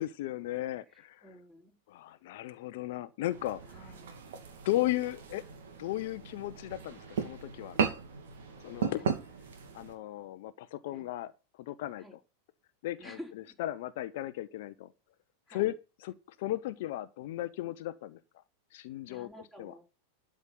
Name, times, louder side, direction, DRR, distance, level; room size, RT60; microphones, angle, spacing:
voice 1, 0.0-1.2 1.9-3.9 4.6-5.4 5.8-7.8 8.6-9.1 9.7-11.3 11.6-12.0 12.8-13.2 13.6-14.9 15.5-15.7 16.0-18.2 18.7-19.3 19.6-19.7, left 15 dB, 50° left, 0.7 m, -35 dB
voice 2, 1.2-1.8 3.7-4.1 9.0-9.1 10.9-11.1 12.0-12.1 13.0-13.5 15.5-15.7 19.1-19.9, equal, 10° right, 4.7 m, -50 dB
sound 1, 3.3-10.0, right 6 dB, 60° right, 2.6 m, -36 dB
12.5 x 6.2 x 7.0 m
figure-of-eight pair, 90°, 0 cm